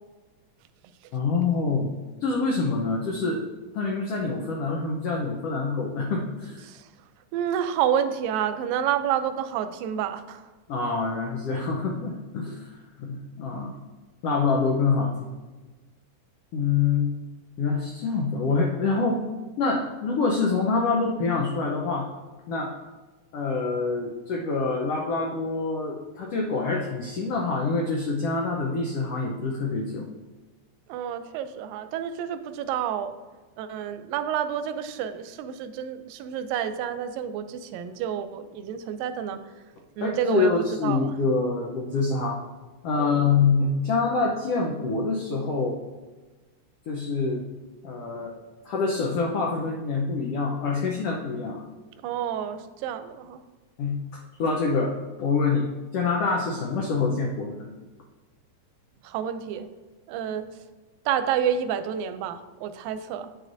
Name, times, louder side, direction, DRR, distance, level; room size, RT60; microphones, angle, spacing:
voice 1, 1.1-1.9 2.2-3.4 3.7-6.6 10.7-12.7 13.0-13.7 14.2-15.3 16.5-17.1 17.6-19.2 19.6-22.1 22.5-22.7 23.3-30.1 40.0-42.4 42.8-45.8 46.9-47.4 47.8-48.3 48.6-51.7 53.8-54.0 54.4-54.9 55.2-55.7 55.9-57.7, left 4 dB, 90° left, -1 dB, 1.3 m, -26 dB
voice 2, 7.3-10.5 30.9-33.1 33.6-39.4 40.0-40.5 40.8-41.1 42.9-43.4 52.0-53.4 59.0-59.7 60.1-60.5 61.1-63.3, right 9 dB, 90° right, 10 dB, 2.3 m, -29 dB
9.4 x 6.4 x 2.6 m, 1.3 s
omnidirectional pair, 3.9 m